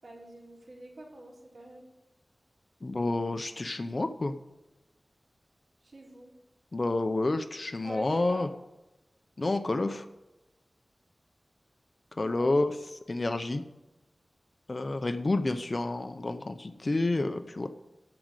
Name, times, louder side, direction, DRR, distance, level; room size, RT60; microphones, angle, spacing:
voice 1, 0.0-1.9 5.8-6.3 7.8-8.5 12.3-12.5, right 1 dB, 70° right, -6 dB, 3.9 m, -46 dB
voice 2, 2.8-4.3 6.7-8.5 9.4-10.0 12.2-12.7 13.1-13.6 14.7-17.7, left 2 dB, 45° left, 9 dB, 0.7 m, -29 dB
14.0 x 5.2 x 9.0 m, 0.97 s
wide cardioid pair, 80°, 0 cm